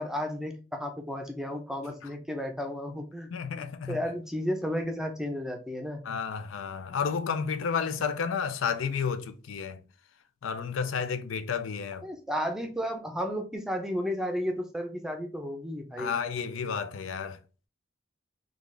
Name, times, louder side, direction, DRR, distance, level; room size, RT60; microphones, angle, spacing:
voice 1, 0.0-6.0 12.0-16.2, equal, 5° right, 0.5 m, -33 dB
voice 2, 3.3-4.0 6.0-9.8 10.4-12.1 16.0-17.4, left 6 dB, 90° left, 0.4 m, -31 dB
3.8 x 2.4 x 3.2 m
head